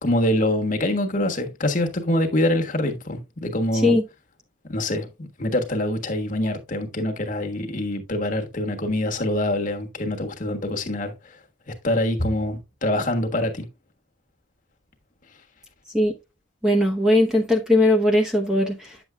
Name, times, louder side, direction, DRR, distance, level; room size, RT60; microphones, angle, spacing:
voice 1, 0.0-4.0 4.7-11.1 11.7-13.7, left 1 dB, 40° left, 1.4 m, -25 dB
voice 2, 16.6-19.0, left 1 dB, 5° right, 0.8 m, -19 dB
9.5 x 7.2 x 2.2 m
head